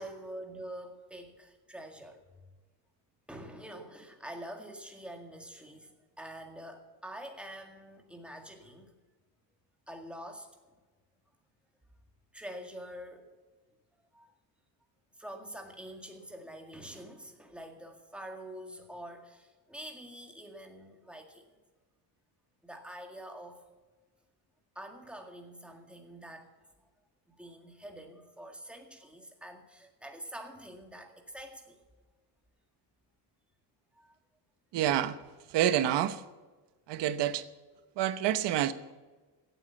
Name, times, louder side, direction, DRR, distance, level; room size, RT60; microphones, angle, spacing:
voice 1, 0.0-2.2 3.3-8.9 9.9-10.5 12.3-13.3 14.1-14.3 15.2-21.6 22.6-23.6 24.8-26.5 27.3-31.8 34.0-34.1, right 1 dB, 5° right, 2.0 m, -46 dB
voice 2, 34.7-35.2 35.5-36.2 36.9-37.4 38.0-38.7, right 11 dB, 85° right, 1.1 m, -28 dB
16.5 x 8.2 x 7.1 m
cardioid pair, 150°, 41 cm